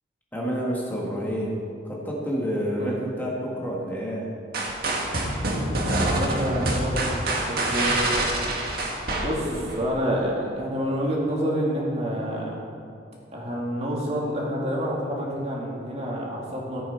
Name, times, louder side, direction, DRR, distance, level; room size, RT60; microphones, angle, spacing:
voice 1, 0.3-1.6 1.8-4.3 9.2-9.7, equal, 10° left, -4 dB, 1.6 m, -29 dB
sound 1, 4.5-9.8, right 1 dB, 60° right, 1.8 m, -26 dB
voice 2, 6.1-8.1 9.2-12.6 13.3-16.8, equal, 35° right, -4 dB, 2.4 m, -28 dB
14.5 x 8.7 x 4.5 m, 2.4 s
head